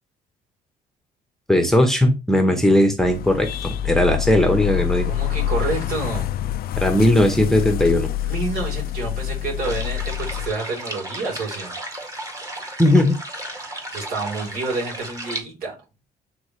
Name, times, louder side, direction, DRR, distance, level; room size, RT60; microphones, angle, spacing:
voice 1, 1.5-5.1 6.8-8.1 12.8-13.2, left 1 dB, ahead, 1.1 m, -18 dB
sound 1, 3.0-10.5, left 12 dB, 65° left, 0.5 m, -26 dB
voice 2, 5.1-6.3 8.2-11.7 13.9-15.7, right 3 dB, 60° right, 4.2 m, -28 dB
sound 2, 9.6-15.4, right 1 dB, 20° right, 2.0 m, -34 dB
8.5 x 3.9 x 3.3 m
cardioid pair, 110°, 17 cm